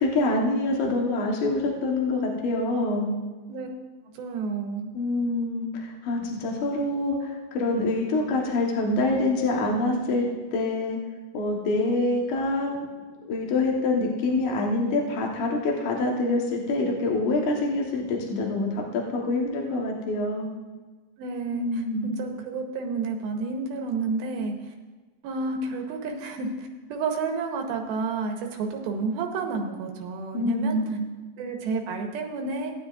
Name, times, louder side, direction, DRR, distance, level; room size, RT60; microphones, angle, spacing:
voice 1, 0.0-3.1 4.9-11.0 11.3-12.7 13.3-20.5 21.5-22.1 30.3-31.0, left 2 dB, 65° left, -1 dB, 2.5 m, -26 dB
voice 2, 4.2-4.9 21.2-21.8 22.2-24.5 25.2-30.8 31.4-32.7, right 4 dB, 90° right, 3 dB, 2.8 m, -30 dB
17.5 x 9.6 x 2.4 m, 1.3 s
omnidirectional pair, 4.2 m